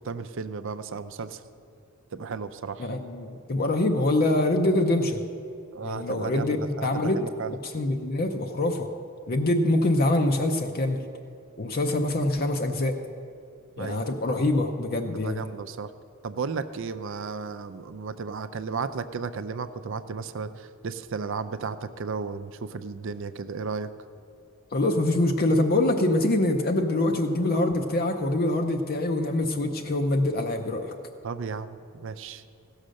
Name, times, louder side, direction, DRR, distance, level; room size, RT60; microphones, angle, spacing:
voice 1, 0.0-1.4 2.1-2.9 5.7-7.5 13.8-14.1 15.1-15.9 16.2-23.9 31.2-32.4, right 5 dB, 60° right, 12 dB, 0.5 m, -34 dB
voice 2, 2.8-5.2 5.8-7.2 7.5-8.9 9.3-11.0 11.6-13.0 13.8-15.4 24.7-30.9, left 1 dB, 45° left, 4 dB, 0.6 m, -25 dB
16.0 x 6.4 x 6.4 m, 2.4 s
head